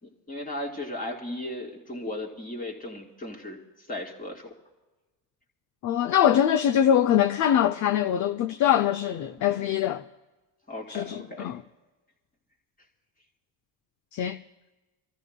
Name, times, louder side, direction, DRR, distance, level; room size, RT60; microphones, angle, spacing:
voice 1, 0.0-4.5 10.7-11.5, left 1 dB, 20° left, 2.5 m, -36 dB
voice 2, 5.8-10.0 10.9-11.6 14.1-14.4, left 10 dB, 45° left, 0.5 m, -23 dB
27.5 x 13.5 x 2.2 m
cardioid pair, 110°, 41 cm